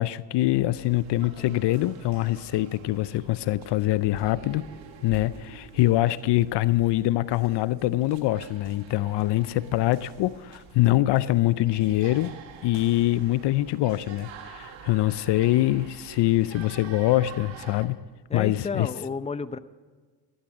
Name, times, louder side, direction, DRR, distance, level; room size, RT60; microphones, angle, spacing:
voice 1, 0.0-4.7 5.0-12.4 12.6-18.0 18.3-18.9, left 16 dB, 70° left, 17 dB, 0.6 m, -24 dB
sound 1, 0.8-17.9, right 7 dB, 85° right, 1.9 m, -47 dB
voice 2, 18.3-19.6, left 4 dB, 15° left, 12 dB, 0.7 m, -31 dB
15.5 x 11.5 x 6.3 m, 1.4 s
supercardioid pair, 70°, 44 cm